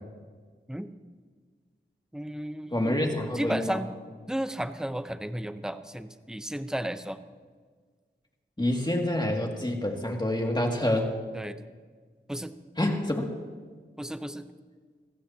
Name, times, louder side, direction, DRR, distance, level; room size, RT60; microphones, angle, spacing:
voice 1, 2.1-3.9 4.3-7.2 11.3-11.6 12.3-12.5 14.0-14.5, right 1 dB, 5° right, 10 dB, 0.8 m, -34 dB
voice 2, 2.7-3.8 8.6-11.1 12.8-13.3, left 1 dB, 20° left, 1 dB, 2.4 m, -27 dB
25.0 x 15.0 x 2.9 m, 1.5 s
wide cardioid pair, 50°, 20 cm